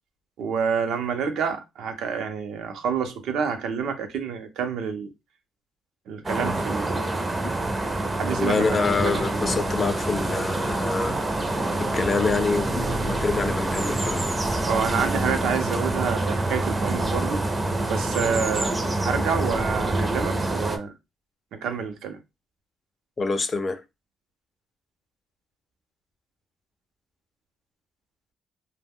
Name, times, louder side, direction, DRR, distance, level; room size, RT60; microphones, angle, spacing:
voice 1, 0.4-5.1 6.1-7.1 8.2-9.4 14.6-17.4 17.9-20.9 21.5-22.2, right 6 dB, 80° right, 0.6 m, -28 dB
sound 1, 6.2-20.8, right 2 dB, 20° right, 0.5 m, -26 dB
voice 2, 8.4-11.2 11.8-14.3 23.2-23.8, left 4 dB, 35° left, 0.4 m, -26 dB
sound 2, 8.9-20.3, left 4 dB, 85° left, 0.5 m, -40 dB
2.1 x 2.1 x 3.5 m
cardioid pair, 90°, 0 cm